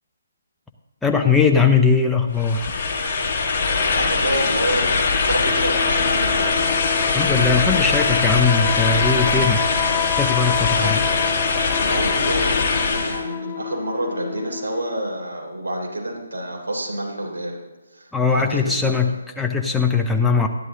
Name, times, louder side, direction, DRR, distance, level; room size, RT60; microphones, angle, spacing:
voice 1, 1.0-2.7 7.1-9.6 10.2-11.0 18.1-20.5, left 5 dB, 5° left, 2 dB, 0.8 m, -20 dB
sound 1, 2.4-13.2, left 4 dB, 35° left, 1.7 m, -21 dB
voice 2, 4.0-6.5 10.8-11.0 11.8-17.6 17.9-19.1, right 1 dB, 70° right, -1 dB, 3.7 m, -28 dB
sound 2, 5.4-15.1, left 9 dB, 20° left, 0.3 m, -29 dB
12.5 x 11.0 x 3.7 m, 1.2 s
figure-of-eight pair, 145°, 0 cm